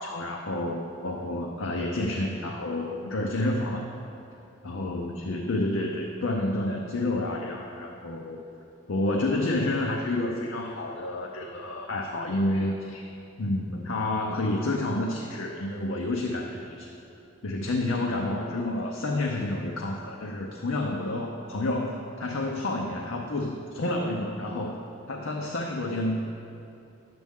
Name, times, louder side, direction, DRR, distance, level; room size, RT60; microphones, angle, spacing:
voice 1, 0.0-3.9 4.6-8.5 8.9-13.1 13.4-16.9 17.4-24.8 25.1-26.2, left 2 dB, 75° left, 1 dB, 0.6 m, -29 dB
10.5 x 7.8 x 3.6 m, 2.7 s
head